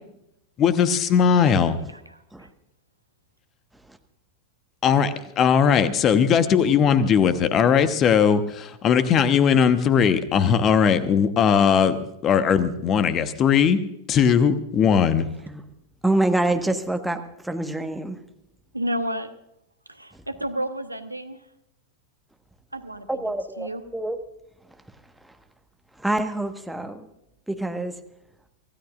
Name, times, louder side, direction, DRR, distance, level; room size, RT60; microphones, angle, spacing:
voice 1, 0.6-1.8 4.8-13.8 14.1-15.2, left 7 dB, 30° left, 11 dB, 1.1 m, -19 dB
voice 2, 1.9-2.5 18.7-19.3 19.9-21.4 22.7-23.8, equal, 85° right, 10 dB, 1.0 m, -32 dB
voice 3, 16.0-18.2 23.1-24.2 25.2-25.3 26.0-27.1 27.5-28.0, right 2 dB, 5° right, 5 dB, 1.4 m, -26 dB
25.5 x 16.0 x 2.5 m, 0.81 s
figure-of-eight pair, 90°, 0 cm